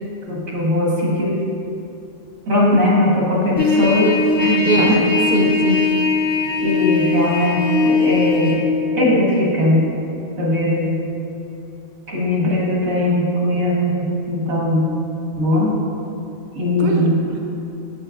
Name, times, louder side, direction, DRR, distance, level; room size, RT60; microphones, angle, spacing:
voice 1, 0.3-1.4 2.5-4.1 4.4-5.0 6.6-8.6 8.9-9.8 10.4-10.9 12.1-14.9 15.4-15.7 16.6-17.2, left 1 dB, 85° right, -5 dB, 1.9 m, -19 dB
Trumpet, 3.6-8.6, left 3 dB, 30° left, 0.5 m, -19 dB
voice 2, 5.3-5.8 16.8-17.4, right 1 dB, 45° right, 0 dB, 0.7 m, -20 dB
7.8 x 6.3 x 2.5 m, 2.7 s
omnidirectional pair, 1.4 m